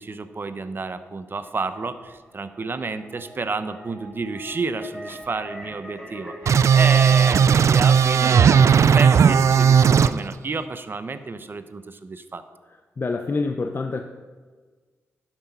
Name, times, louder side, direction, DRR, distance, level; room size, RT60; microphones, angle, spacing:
voice 1, 0.0-12.4, right 3 dB, 40° right, 11 dB, 0.7 m, -30 dB
sound 1, 1.9-7.4, equal, 10° left, 2.8 m, -42 dB
sound 2, 6.5-10.1, right 7 dB, 65° right, 0.3 m, -16 dB
voice 2, 13.0-14.0, left 3 dB, 40° left, 5 dB, 0.6 m, -26 dB
11.5 x 6.1 x 5.5 m, 1.4 s
cardioid pair, 70°, 5 cm